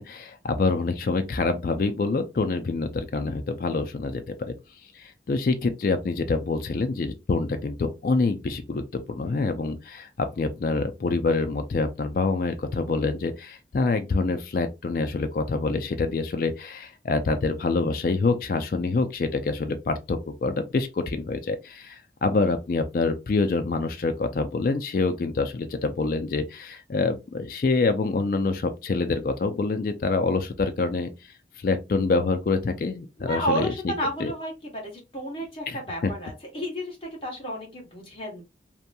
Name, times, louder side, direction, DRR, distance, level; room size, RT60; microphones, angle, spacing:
voice 1, 0.0-4.5 5.0-31.1 31.6-33.7 34.2-34.3 35.7-36.1, left 3 dB, 50° left, 0.3 m, -26 dB
voice 2, 33.2-38.4, equal, 30° left, 1.1 m, -32 dB
2.8 x 2.6 x 2.2 m
head